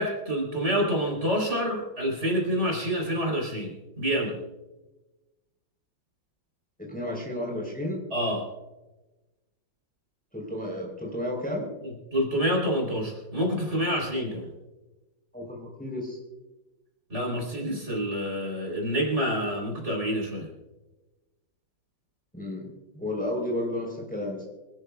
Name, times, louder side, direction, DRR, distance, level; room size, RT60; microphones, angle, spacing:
voice 1, 0.0-4.3 8.1-8.5 12.1-14.5 17.1-20.5, equal, 35° right, 0 dB, 4.2 m, -27 dB
voice 2, 6.8-8.0 10.3-11.7 15.3-16.2 22.3-22.7 22.9-24.4, left 1 dB, 5° left, 0 dB, 3.7 m, -32 dB
26.0 x 13.5 x 2.3 m, 1.1 s
omnidirectional pair, 2.1 m